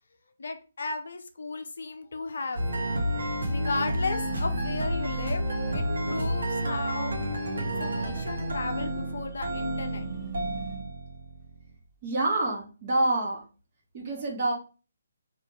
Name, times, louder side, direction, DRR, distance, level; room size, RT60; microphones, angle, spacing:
voice 1, 0.4-2.6 3.2-5.4 5.7-7.1 7.6-10.3, left 3 dB, 55° left, 6 dB, 0.4 m, -35 dB
sound 1, 2.5-11.7, right 1 dB, 60° right, 0.9 m, -30 dB
sound 2, 4.2-4.9 7.4-8.3 9.9-11.0, right 12 dB, 15° right, 0.4 m, -43 dB
voice 2, 12.0-13.4 13.9-14.5, right 2 dB, 30° right, -2 dB, 1.1 m, -27 dB
3.4 x 2.4 x 3.0 m, 0.35 s
figure-of-eight pair, 135°, 0 cm